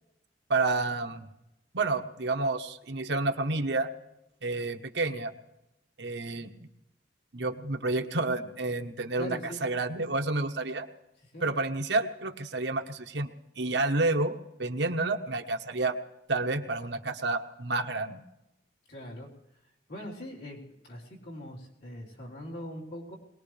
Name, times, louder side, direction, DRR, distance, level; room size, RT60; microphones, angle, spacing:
voice 1, 0.5-1.3 1.7-3.9 4.4-5.3 6.0-6.7 7.3-10.9 11.4-13.3 13.6-15.9 16.3-18.2, right 3 dB, 80° right, 6 dB, 1.2 m, -29 dB
voice 2, 9.2-9.6 11.2-11.5 18.9-19.3 19.9-23.2, left 1 dB, 65° left, -3 dB, 3.9 m, -41 dB
22.0 x 19.5 x 3.3 m, 0.90 s
head